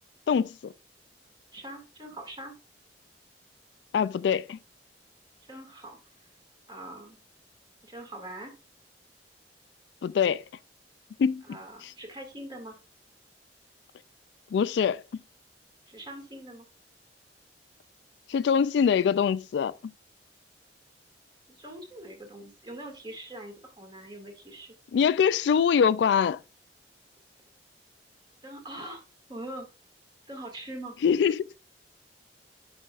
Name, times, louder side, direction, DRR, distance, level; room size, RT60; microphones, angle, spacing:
voice 1, 0.3-0.7 3.9-4.6 10.0-10.4 11.2-11.4 14.5-15.2 18.3-19.9 24.9-26.4 31.0-31.5, left 7 dB, 70° left, 0.3 m, -24 dB
voice 2, 1.5-2.5 5.5-6.0 6.7-7.2 7.8-8.5 11.5-12.8 15.9-16.7 21.5-24.8 28.4-29.0 29.3-29.7 30.3-31.0, right 1 dB, 25° right, 2.0 m, -42 dB
9.9 x 5.3 x 2.4 m
head